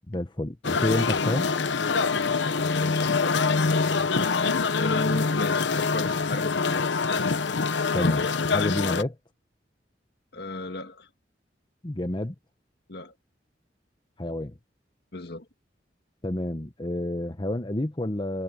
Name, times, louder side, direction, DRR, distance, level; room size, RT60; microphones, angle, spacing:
voice 1, 0.1-1.5 7.9-9.2 11.8-12.3 14.2-14.6 16.2-18.4, left 1 dB, 25° left, 1.0 m, -29 dB
sound 1, 0.6-9.0, left 4 dB, 80° left, 0.9 m, -25 dB
voice 2, 2.6-6.9 10.3-11.1 12.9-13.1 15.1-15.5, left 2 dB, 60° left, 2.0 m, -35 dB
head